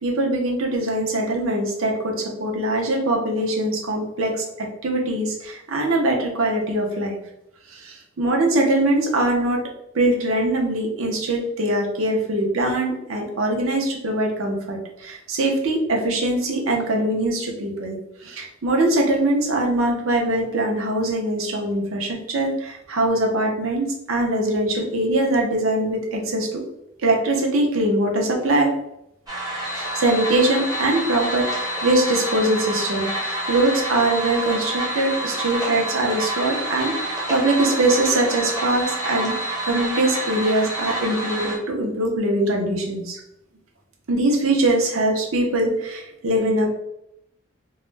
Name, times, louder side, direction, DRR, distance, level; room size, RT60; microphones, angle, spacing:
voice 1, 0.0-7.2 7.7-9.6 9.9-26.6 27.0-28.7 29.7-43.2 44.1-46.7, right 1 dB, 70° right, 0 dB, 0.6 m, -22 dB
sound 1, 29.3-41.6, right 1 dB, 20° right, 0.6 m, -28 dB
2.3 x 2.0 x 3.1 m, 0.83 s
head